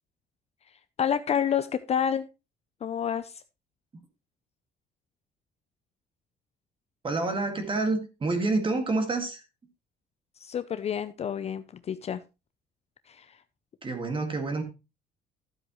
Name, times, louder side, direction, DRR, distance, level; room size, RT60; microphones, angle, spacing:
voice 1, 1.0-2.3 2.8-3.4 10.4-12.2 13.1-13.4, left 8 dB, 40° left, 0.5 m, -29 dB
voice 2, 7.0-9.4 13.8-14.6, right 3 dB, 30° right, 1.9 m, -28 dB
12.0 x 7.9 x 3.0 m
cardioid pair, 110°, 17 cm